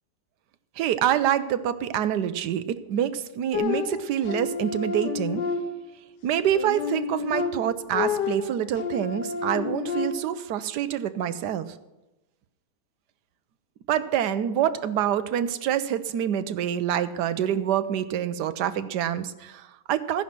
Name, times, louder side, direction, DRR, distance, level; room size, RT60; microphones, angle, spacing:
voice 1, 0.8-5.4 6.2-11.7 13.9-20.2, right 10 dB, 75° right, 12 dB, 1.3 m, -26 dB
sound 1, 3.5-6.1 6.5-10.5, left 5 dB, 85° left, 1.7 m, -30 dB
14.5 x 10.5 x 5.9 m, 1.0 s
omnidirectional pair, 1.8 m